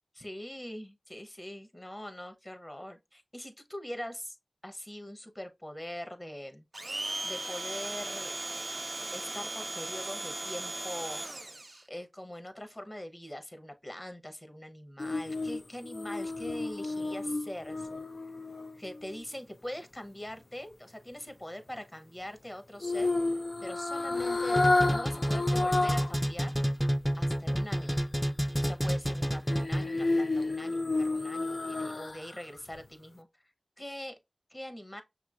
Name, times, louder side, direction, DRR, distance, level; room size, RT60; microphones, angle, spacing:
voice 1, 0.2-4.4 4.6-6.6 7.2-8.3 9.1-11.2 11.9-18.0 18.7-23.1 23.6-26.5 27.2-28.0 28.6-33.3 33.8-34.1 34.5-35.0, left 1 dB, 30° left, 0.9 m, -43 dB
Domestic sounds home sounds, 6.7-11.8, right 2 dB, 45° right, 0.4 m, -37 dB
sound 1, 15.0-19.2 22.8-26.2 26.6-26.7 29.5-32.4 32.7-32.8, left 2 dB, 70° left, 0.4 m, -31 dB
sound 2, 24.6-30.1, equal, 10° left, 0.5 m, -29 dB
5.8 x 3.0 x 2.4 m
wide cardioid pair, 45°, 0 cm